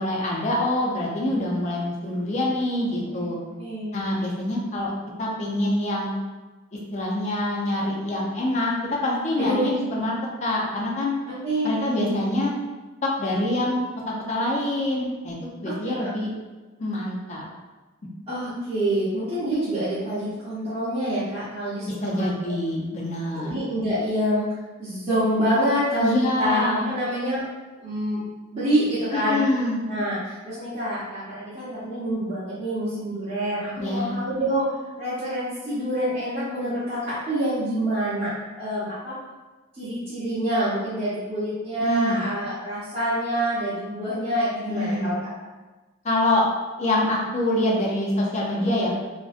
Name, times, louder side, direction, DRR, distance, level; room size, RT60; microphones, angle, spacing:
voice 1, 0.0-3.4 3.9-4.9 5.2-6.1 6.9-10.2 10.4-11.1 11.6-12.5 13.0-13.8 14.3-15.4 15.6-16.3 16.8-17.5 21.9-23.5 26.0-26.9 29.1-29.8 33.8-34.2 41.8-42.2 44.7-45.1 46.0-46.5 46.8-49.0, left 1 dB, 35° left, -3 dB, 0.4 m, -25 dB
voice 2, 3.6-3.9 9.4-9.7 11.4-12.2 15.6-16.1 18.3-22.5 23.4-24.5 24.8-26.1 26.4-27.4 27.8-28.2 28.5-29.4 29.9-38.3 38.6-39.2 39.7-45.1 48.6-48.8, equal, 30° right, -13 dB, 0.6 m, -26 dB
2.5 x 2.1 x 2.4 m, 1.2 s
head